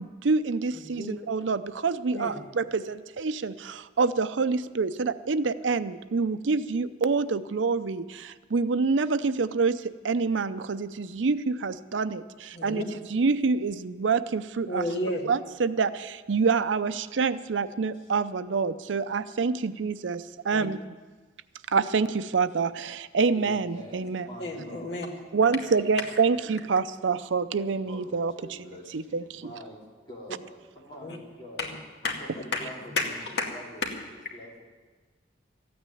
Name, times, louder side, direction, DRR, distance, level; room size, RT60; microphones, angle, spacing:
voice 1, 0.0-12.8 13.1-14.8 15.2-20.8 21.7-24.3 25.3-28.3 28.9-29.5, right 4 dB, 85° right, 14 dB, 0.6 m, -27 dB
voice 2, 12.5-12.9 14.6-15.2 20.5-20.7 24.4-25.1 31.0-31.2 31.6-31.8 32.0-32.2 32.9-33.4, left 2 dB, 60° left, 1 dB, 2.2 m, -31 dB
voice 3, 23.3-25.0 27.9-31.6 32.2-34.6, equal, 25° left, -3 dB, 3.3 m, -46 dB
14.0 x 9.4 x 9.2 m, 1.4 s
head